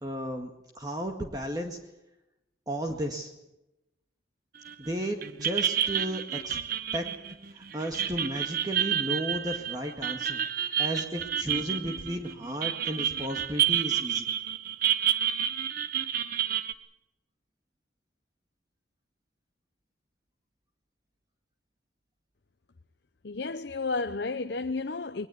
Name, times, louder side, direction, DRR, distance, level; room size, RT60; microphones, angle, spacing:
voice 1, 0.0-1.8 2.7-3.3 4.8-6.6 6.9-7.1 7.5-14.3, equal, 20° right, 1.9 m, -34 dB
sound 1, 4.7-4.9 5.2-16.7, right 10 dB, 50° right, 1.2 m, -29 dB
voice 2, 23.2-25.3, left 3 dB, 65° left, 0.7 m, -32 dB
22.0 x 20.0 x 8.4 m
head